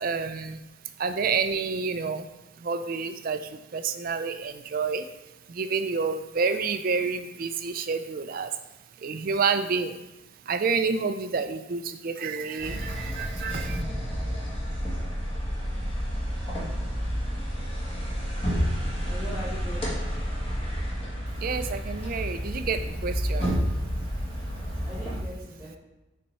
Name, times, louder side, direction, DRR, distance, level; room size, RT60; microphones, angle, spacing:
voice 1, 0.0-0.6 1.0-2.3 2.6-3.4 3.7-5.0 5.5-8.5 9.0-9.9 10.5-13.8 21.4-23.5, right 5 dB, 45° right, 9 dB, 0.4 m, -28 dB
sound 1, 12.6-25.2, equal, 25° left, 1.4 m, -30 dB
voice 2, 19.0-20.0 24.8-25.8, equal, 10° right, -8 dB, 1.3 m, -40 dB
5.4 x 4.4 x 5.5 m, 1.0 s
head